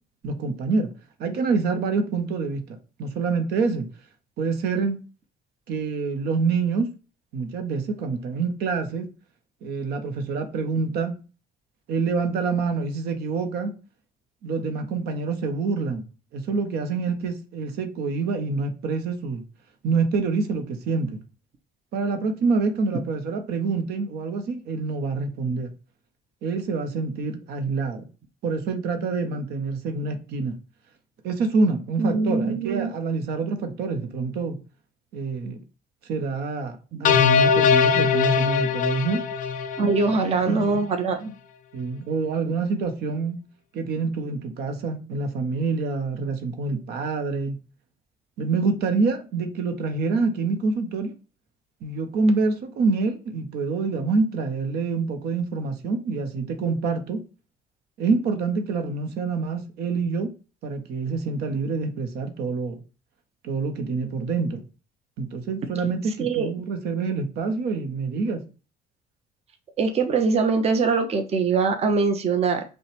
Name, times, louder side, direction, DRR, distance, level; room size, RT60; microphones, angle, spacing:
voice 1, 0.2-0.9 1.2-3.9 4.4-5.0 5.7-6.9 7.3-9.1 9.6-11.2 11.9-13.7 14.4-16.0 16.3-19.4 19.8-21.2 21.9-25.7 26.4-28.1 28.4-30.6 31.2-34.6 35.1-35.6 36.1-39.2 40.5-40.8 41.7-43.4 43.7-47.6 48.4-51.1 51.8-57.2 58.0-60.3 60.6-62.7 63.4-64.6 65.2-68.4, right 4 dB, 75° right, 0.8 m, -26 dB
voice 2, 32.0-32.9 39.8-41.3 66.2-66.5 69.8-72.6, right 4 dB, 40° right, 0.6 m, -22 dB
sound 1, 37.0-40.4, left 6 dB, 50° left, 0.4 m, -21 dB
5.3 x 2.1 x 3.3 m
cardioid pair, 110°, 17 cm